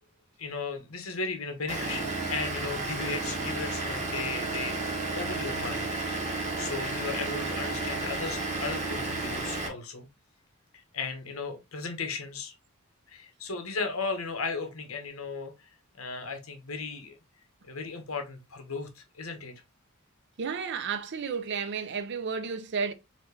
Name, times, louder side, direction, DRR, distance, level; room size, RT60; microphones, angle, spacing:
voice 1, 0.4-4.8 5.1-10.1 10.7-12.5 13.1-17.1 17.6-19.5, left 4 dB, 70° left, 1.0 m, -36 dB
Vehicle / Engine, 1.7-9.7, right 2 dB, 35° right, 1.2 m, -32 dB
voice 2, 20.4-22.9, right 5 dB, 55° right, 0.5 m, -32 dB
4.2 x 2.7 x 3.2 m
head